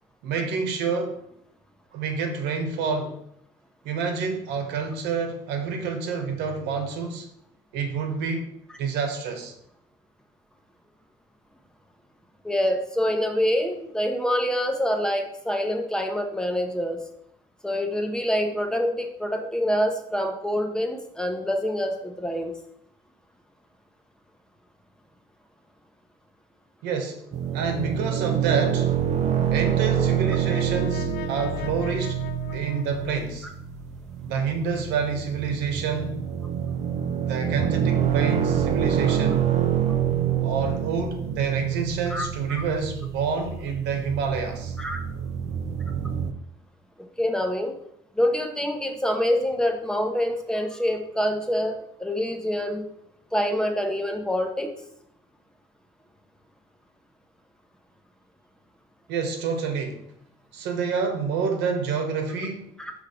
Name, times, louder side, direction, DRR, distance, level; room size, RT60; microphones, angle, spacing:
voice 1, 0.2-1.2 1.9-3.2 3.8-7.3 7.7-8.5 8.8-9.5 26.8-27.2 27.5-28.9 29.5-32.2 32.5-33.5 34.2-36.2 37.3-39.5 40.4-44.8 59.1-60.0 60.5-62.6, right 5 dB, 90° right, 4 dB, 1.2 m, -28 dB
voice 2, 12.4-17.0 17.6-22.5 42.1-42.6 44.8-45.0 47.2-47.7 48.1-52.9 53.3-54.7 62.8-62.9, equal, 5° left, 4 dB, 0.9 m, -26 dB
sound 1, 27.3-46.3, right 9 dB, 45° right, 0.6 m, -27 dB
Brass instrument, 29.1-33.5, left 9 dB, 75° left, 0.5 m, -41 dB
5.5 x 3.4 x 5.0 m, 0.73 s
cardioid pair, 110°, 17 cm